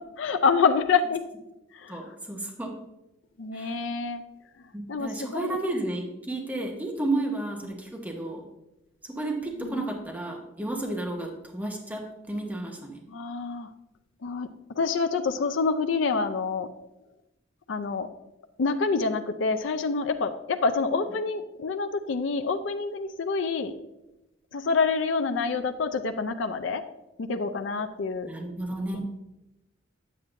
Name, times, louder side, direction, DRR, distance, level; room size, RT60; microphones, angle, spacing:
voice 1, 0.2-1.2 1.7-2.0 3.4-4.2 4.9-5.6 9.6-9.8 13.1-13.7 14.2-14.5 14.8-16.7 17.7-18.1 18.6-23.7 24.5-26.8 27.2-28.3 28.9-29.0, left 4 dB, 70° left, 7 dB, 0.4 m, -27 dB
voice 2, 1.9-2.7 3.5-3.8 4.7-8.5 9.1-13.0 28.2-29.0, right 2 dB, 10° right, 1 dB, 0.9 m, -32 dB
8.3 x 7.8 x 2.6 m, 0.93 s
head